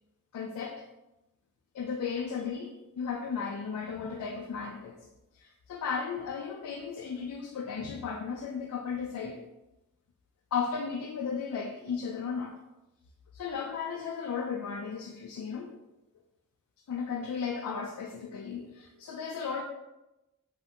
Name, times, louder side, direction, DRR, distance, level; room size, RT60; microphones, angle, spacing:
voice 1, 0.3-0.8 1.7-5.0 5.3-9.4 10.5-12.6 13.3-15.8 16.9-19.6, left 6 dB, 85° left, 2 dB, 0.3 m, -35 dB
2.7 x 2.1 x 3.3 m, 0.97 s
head